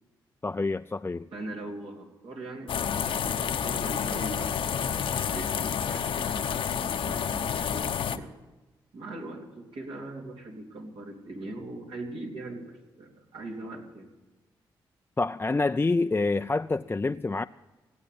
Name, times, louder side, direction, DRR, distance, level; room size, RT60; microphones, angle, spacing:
voice 1, 0.4-1.3 15.2-17.5, left 3 dB, 25° left, 0.4 m, -27 dB
voice 2, 1.3-4.7 5.3-8.3 8.9-14.1, right 2 dB, 70° right, 3.6 m, -41 dB
sound 1, 2.7-8.2, left 8 dB, 70° left, 0.9 m, -29 dB
17.5 x 8.6 x 9.6 m
supercardioid pair, 50°, 9 cm